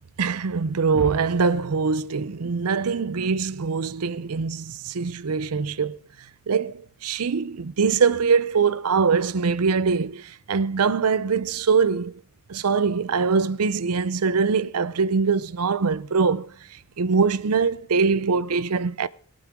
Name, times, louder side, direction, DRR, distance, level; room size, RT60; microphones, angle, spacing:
voice 1, 0.2-6.0 6.5-12.1 12.5-16.5 17.0-19.1, right 5 dB, 80° right, 0.6 m, -23 dB
22.0 x 8.8 x 3.6 m
head